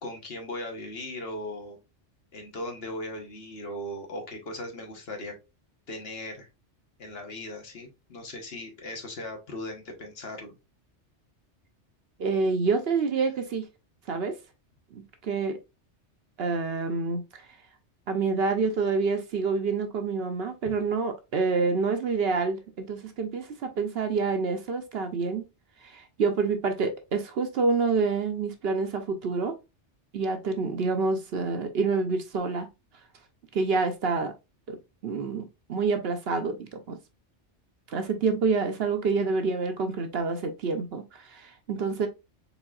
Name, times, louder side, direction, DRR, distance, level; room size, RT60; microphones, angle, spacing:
voice 1, 0.0-1.8 2.3-5.4 5.9-6.5 7.0-10.5, left 1 dB, 60° left, 1.2 m, -38 dB
voice 2, 12.2-13.7 14.1-14.3 14.9-15.6 16.4-17.5 18.1-25.4 25.8-29.5 30.1-32.7 33.5-34.3 34.7-34.8 35.0-37.0 37.9-42.1, right 4 dB, 60° right, 0.9 m, -27 dB
4.1 x 3.5 x 2.3 m
omnidirectional pair, 1.2 m